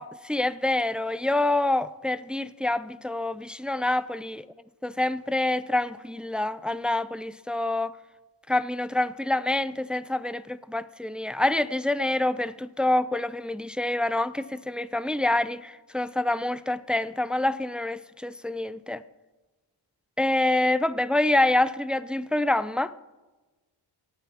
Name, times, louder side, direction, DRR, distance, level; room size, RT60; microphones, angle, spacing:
voice 1, 0.0-4.4 4.8-7.9 8.5-19.0 20.2-22.9, left 2 dB, ahead, 0.4 m, -26 dB
24.5 x 9.0 x 2.9 m
supercardioid pair, 45°, 47 cm